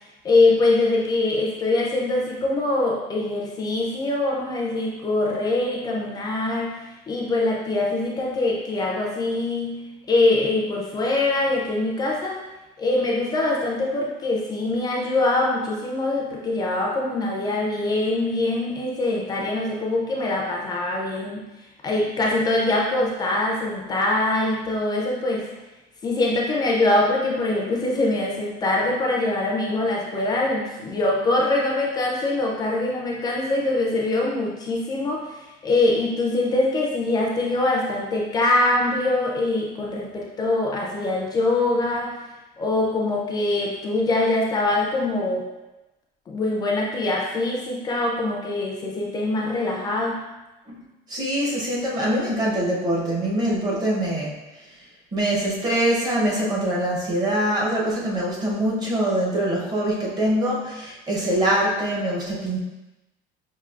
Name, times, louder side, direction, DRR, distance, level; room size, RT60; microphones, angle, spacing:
voice 1, 0.0-9.8 10.1-12.4 12.8-21.4 21.8-25.5 26.0-42.2 42.6-45.5 46.3-50.3, left 2 dB, 20° left, -2 dB, 0.4 m, -23 dB
voice 2, 51.1-54.3 55.1-62.6, right 1 dB, 20° right, -4 dB, 0.7 m, -23 dB
5.7 x 2.7 x 2.4 m, 1.0 s
cardioid pair, 175°, 20 cm